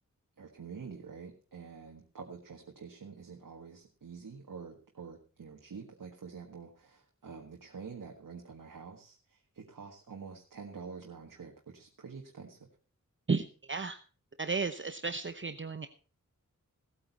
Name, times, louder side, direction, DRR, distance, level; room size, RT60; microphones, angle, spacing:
voice 1, 0.4-12.7, right 5 dB, 90° right, 1 dB, 1.7 m, -47 dB
voice 2, 13.3-14.0 14.4-15.9, right 4 dB, 35° right, 9 dB, 0.8 m, -33 dB
17.5 x 8.8 x 4.2 m, 0.38 s
wide cardioid pair, 65°, 32 cm